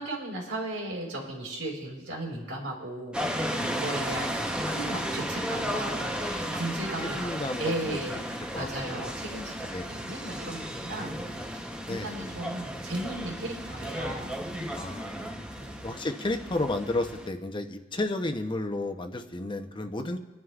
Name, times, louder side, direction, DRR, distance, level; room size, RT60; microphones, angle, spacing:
voice 1, 0.0-7.3 7.6-11.1 11.6-14.3 15.6-15.8, right 1 dB, 90° right, -1 dB, 4.1 m, -36 dB
sound 1, 3.1-17.3, equal, 5° right, 0.8 m, -34 dB
voice 2, 3.6-4.2 7.1-8.0 8.5-9.1 9.7-9.9 11.8-12.1 14.7-15.5 15.8-20.2, left 2 dB, 25° left, 6 dB, 0.8 m, -32 dB
28.5 x 11.0 x 2.4 m, 1.1 s
head